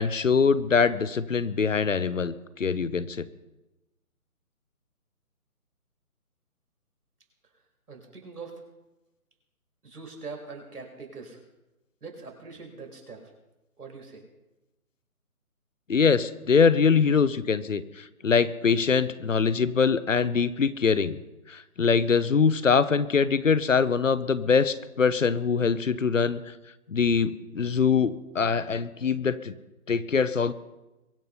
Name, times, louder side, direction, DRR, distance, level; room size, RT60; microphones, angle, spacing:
voice 1, 0.0-3.3 15.9-21.2 21.5-26.4 26.9-29.5 29.9-30.5, left 5 dB, 55° left, 16 dB, 0.9 m, -23 dB
voice 2, 7.9-8.6 9.8-11.4 12.0-13.3 13.8-14.2, right 4 dB, 90° right, 1 dB, 5.3 m, -42 dB
23.0 x 8.2 x 5.5 m, 1.0 s
hypercardioid pair, 180°, 44 cm